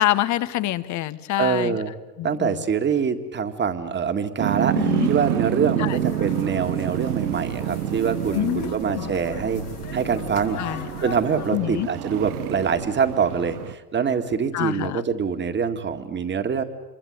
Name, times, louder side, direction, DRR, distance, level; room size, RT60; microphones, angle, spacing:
voice 1, 0.0-1.8 2.2-2.6 4.7-5.1 5.8-6.0 8.3-9.1 10.6-10.9 11.5-11.9 14.5-15.0, left 14 dB, 40° left, 15 dB, 1.2 m, -26 dB
voice 2, 1.4-1.9 2.2-9.6 9.9-16.6, right 6 dB, 25° right, 7 dB, 2.1 m, -25 dB
sound 1, 4.4-13.7, right 13 dB, 75° right, 1.1 m, -28 dB
sound 2, 5.9-11.6, left 8 dB, 75° left, 3.1 m, -39 dB
26.5 x 23.5 x 8.1 m, 1.2 s
hypercardioid pair, 90°, 46 cm